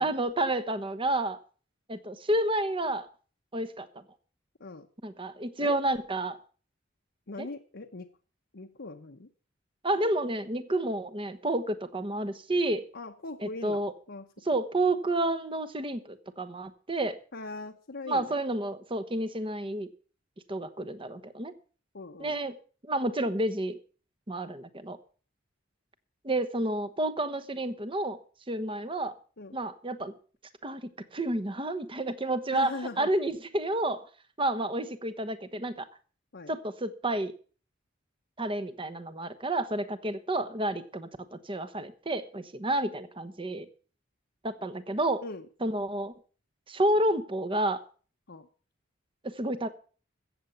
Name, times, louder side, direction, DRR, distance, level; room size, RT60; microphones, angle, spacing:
voice 1, 0.0-1.4 1.9-3.1 3.5-4.0 5.0-6.4 7.4-7.5 9.8-12.8 13.4-13.9 14.5-17.2 18.1-19.9 20.5-21.5 22.2-22.6 22.8-23.8 24.3-25.0 26.2-28.2 28.5-29.1 29.5-30.1 30.6-34.0 34.4-35.9 36.5-37.3 38.4-43.7 44.4-45.2 45.6-46.1 46.7-47.8 49.2-49.7, right 1 dB, 25° right, 12 dB, 1.1 m, -30 dB
voice 2, 7.3-8.1 8.5-9.3 12.9-13.8 14.1-14.3 17.3-18.4 21.9-22.4 29.4-29.5 32.5-33.1 36.3-36.5 45.2-45.5 48.3-48.5, left 3 dB, 60° left, 2 dB, 1.0 m, -40 dB
15.0 x 7.9 x 6.9 m, 0.40 s
head